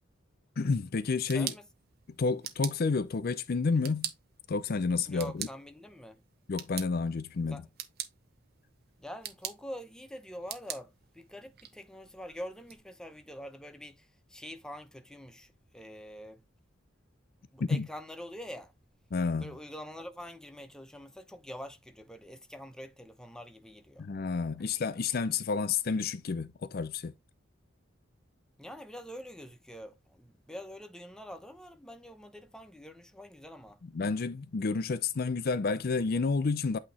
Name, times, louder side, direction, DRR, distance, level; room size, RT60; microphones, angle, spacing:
voice 1, 0.6-1.5 2.2-4.1 4.5-5.5 6.5-7.6 17.6-17.9 19.1-19.6 24.0-27.1 33.9-36.8, left 4 dB, 50° left, 0.5 m, -30 dB
sound 1, 1.0-12.8, right 10 dB, 55° right, 1.0 m, -45 dB
voice 2, 1.3-1.6 5.0-6.2 7.5-7.6 9.0-16.4 17.5-18.7 19.4-24.1 28.6-33.8, equal, 5° left, 0.7 m, -45 dB
8.6 x 2.9 x 4.1 m
head